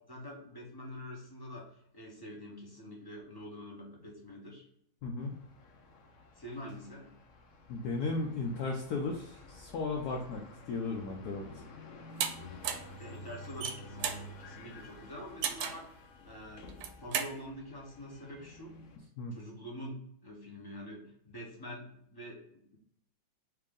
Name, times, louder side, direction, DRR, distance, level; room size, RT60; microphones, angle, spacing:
voice 1, 0.1-4.6 6.4-7.1 13.0-18.8 19.3-22.8, equal, 20° left, -3 dB, 0.5 m, -46 dB
voice 2, 5.0-5.4 7.7-11.6 19.2-19.3, left 3 dB, 70° left, 0 dB, 1.0 m, -35 dB
sound 1, 5.2-19.0, left 2 dB, 85° left, 0.6 m, -51 dB
sound 2, 12.2-12.3 12.6-12.9 13.5-14.2 15.4-15.9 16.7-17.3, right 8 dB, 90° right, 1.5 m, -33 dB
4.6 x 2.9 x 3.6 m, 0.70 s
omnidirectional pair, 2.2 m